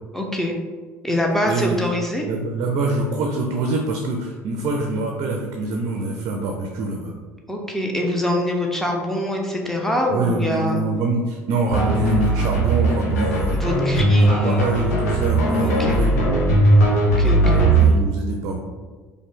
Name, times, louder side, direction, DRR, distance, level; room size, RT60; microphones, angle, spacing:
voice 1, 0.1-0.6 1.0-2.3 7.5-10.8 13.5-14.7 15.6-16.0 17.0-18.0, left 1 dB, 5° left, 0 dB, 0.8 m, -24 dB
voice 2, 1.4-1.8 2.3-7.1 10.1-13.6 13.9-16.2 17.4-18.6, right 3 dB, 50° right, 1 dB, 0.5 m, -25 dB
sound 1, 11.7-17.9, right 1 dB, 70° left, 0.8 m, -18 dB
5.1 x 2.2 x 3.5 m, 1.4 s
figure-of-eight pair, 55°, 9 cm